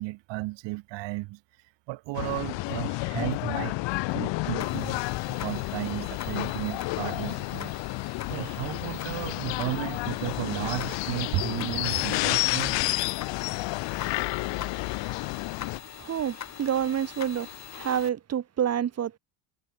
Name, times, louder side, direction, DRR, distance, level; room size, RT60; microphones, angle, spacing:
voice 1, 0.0-1.4 1.9-3.8 4.1-5.0 5.3-7.7 8.3-12.9, right 21 dB, 75° right, 4.9 m, -34 dB
sound 1, 2.1-15.8, left 22 dB, 75° left, 2.5 m, -30 dB
sound 2, 4.6-18.1, left 9 dB, 35° left, 5.0 m, -43 dB
voice 2, 16.0-19.2, right 9 dB, 35° right, 2.8 m, -28 dB
cardioid pair, 145°, 44 cm